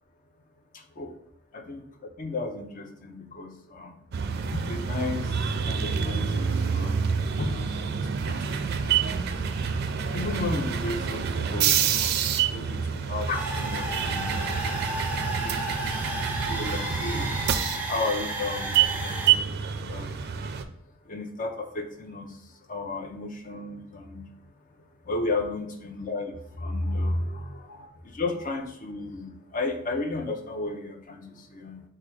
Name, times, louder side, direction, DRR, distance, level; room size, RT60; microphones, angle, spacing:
voice 1, 1.5-3.9 4.5-5.2 5.6-7.0 7.4-7.9 8.3-9.2 10.1-12.1 12.5-12.8 13.1-14.6 15.4-16.0 16.5-17.3 17.9-20.5 21.1-22.4 22.7-24.3 25.1-27.9 28.1-31.8, left 2 dB, 40° left, 4 dB, 0.6 m, -33 dB
sound 1, 4.1-20.6, right 7 dB, 50° right, 0.4 m, -27 dB
sound 2, 13.3-19.3, right 1 dB, 10° right, 0.7 m, -33 dB
4.7 x 2.3 x 4.6 m, 0.76 s
head